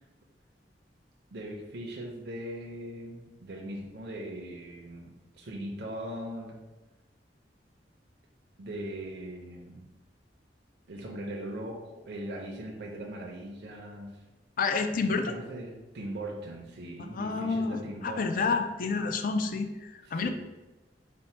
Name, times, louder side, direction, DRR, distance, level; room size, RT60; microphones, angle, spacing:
voice 1, 1.3-6.6 8.6-9.9 10.9-14.2 14.9-18.6 20.0-20.3, right 1 dB, 65° right, -1 dB, 0.5 m, -40 dB
voice 2, 14.6-15.4 17.1-20.3, left 4 dB, 50° left, 7 dB, 0.4 m, -29 dB
4.3 x 2.1 x 4.3 m, 1.1 s
head